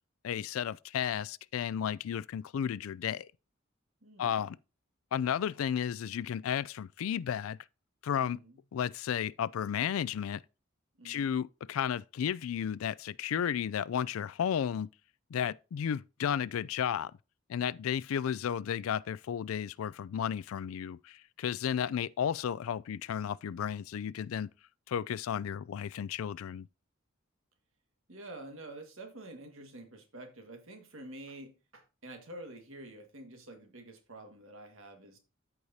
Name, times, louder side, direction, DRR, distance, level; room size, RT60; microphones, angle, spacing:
voice 1, 0.2-3.3 4.2-4.6 5.1-7.6 8.0-8.4 8.7-10.4 11.0-14.9 15.3-17.1 17.5-24.5 24.9-26.7, left 8 dB, 85° left, 0.3 m, -33 dB
voice 2, 4.0-4.5 8.2-8.6 11.0-11.4 28.1-35.2, right 1 dB, 75° right, 1.8 m, -48 dB
13.5 x 4.8 x 2.7 m
head